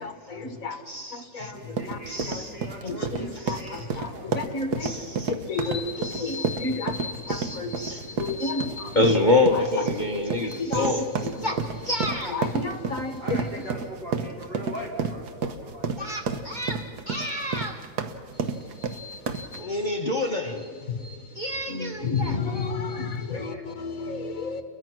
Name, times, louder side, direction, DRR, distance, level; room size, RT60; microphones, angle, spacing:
voice 1, 0.0-0.8 1.1-2.4 2.8-5.0 5.3-9.0 10.2-11.0 11.2-11.5 12.3-13.4 18.6-19.7 20.9-21.2 21.7-24.6, left 4 dB, 50° left, 7 dB, 1.8 m, -32 dB
voice 2, 0.7-1.5 2.1-2.5 3.5-3.9 4.8-5.3 6.0-6.5 7.3-8.0 8.4-8.5 8.9-11.6 11.8-12.4 16.0-17.8 19.6-20.6 21.3-22.4, left 2 dB, 30° left, 4 dB, 1.2 m, -27 dB
sound 1, 1.5-19.6, right 5 dB, 65° right, 1.7 m, -31 dB
voice 3, 1.5-5.0 12.1-12.3 13.2-15.9 23.1-24.2, equal, 80° right, -3 dB, 5.7 m, -41 dB
30.0 x 22.0 x 6.2 m, 2.1 s
omnidirectional pair, 1.9 m